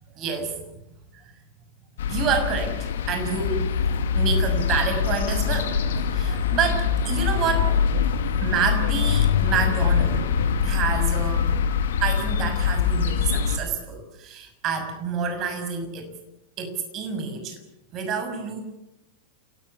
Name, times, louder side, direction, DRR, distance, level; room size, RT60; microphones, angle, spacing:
voice 1, 0.2-0.7 1.1-1.3 2.1-3.7 4.1-7.8 8.4-10.3 10.6-11.5 12.0-16.1 16.6-17.6 17.9-18.6, right 6 dB, 35° right, 6 dB, 6.4 m, -28 dB
sound 1, 2.0-13.6, left 7 dB, 60° left, 2.3 m, -23 dB
29.5 x 18.5 x 7.2 m, 0.86 s
figure-of-eight pair, 90°, 0 cm